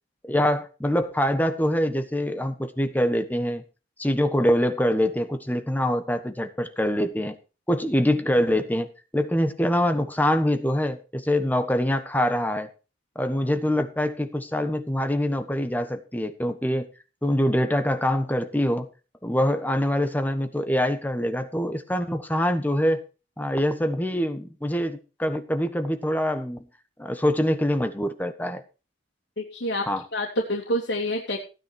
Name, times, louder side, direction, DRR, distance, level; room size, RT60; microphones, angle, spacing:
voice 1, 0.3-3.6 4.0-7.3 7.7-8.9 9.1-12.7 13.1-16.9 17.2-18.9 19.2-23.0 23.4-26.6 27.0-28.6 29.8-30.0, equal, 10° left, 8 dB, 1.3 m, -24 dB
voice 2, 29.4-29.8 30.1-31.4, equal, 85° left, 0 dB, 2.7 m, -27 dB
16.0 x 9.7 x 4.5 m, 0.33 s
head